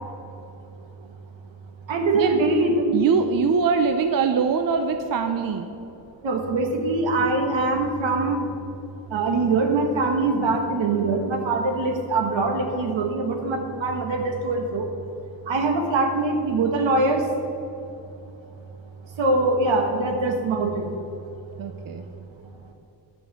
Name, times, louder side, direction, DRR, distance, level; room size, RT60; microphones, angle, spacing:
voice 1, 1.9-3.0 6.2-8.4 9.1-14.8 15.5-17.2 19.2-20.9, right 3 dB, 75° right, 3 dB, 1.6 m, -23 dB
voice 2, 2.9-5.7 21.6-22.1, right 5 dB, 50° right, 7 dB, 0.6 m, -22 dB
11.0 x 5.4 x 7.1 m, 2.9 s
cardioid pair, 110°, 46 cm